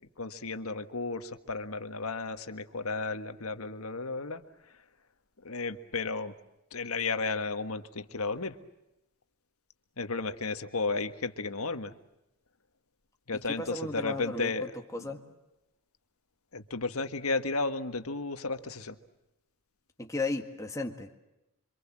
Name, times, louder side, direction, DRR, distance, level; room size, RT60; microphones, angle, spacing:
voice 1, 0.2-4.4 5.4-6.3 6.7-8.5 10.0-11.9 13.3-14.7 16.5-19.0, left 3 dB, 75° left, 9 dB, 1.6 m, -33 dB
voice 2, 13.3-15.2 20.0-21.2, left 2 dB, 15° left, 3 dB, 1.8 m, -35 dB
27.5 x 25.5 x 7.4 m, 0.92 s
head